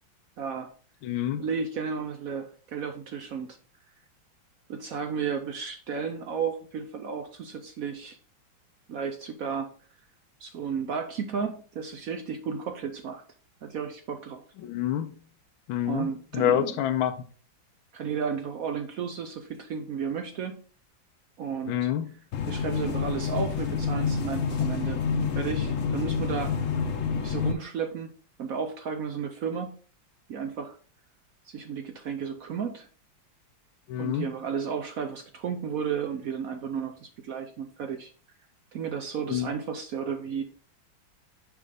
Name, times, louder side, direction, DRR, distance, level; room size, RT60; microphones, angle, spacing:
voice 1, 0.4-0.7 1.4-3.6 4.7-8.2 8.9-9.7 10.4-13.2 13.6-14.4 15.8-16.8 17.9-20.6 21.4-21.9 22.4-26.5 27.2-28.1 28.4-29.7 30.3-30.8 31.4-32.9 34.0-38.1 38.7-40.4, right 6 dB, 70° right, 0.8 m, -33 dB
voice 2, 1.0-1.4 14.6-15.1 15.7-16.1 16.3-17.1 21.7-22.1 33.9-34.3 39.3-39.5, left 11 dB, 90° left, 1.4 m, -26 dB
sound 1, 22.3-27.5, left 6 dB, 55° left, 0.9 m, -28 dB
6.4 x 5.4 x 3.4 m
omnidirectional pair, 2.1 m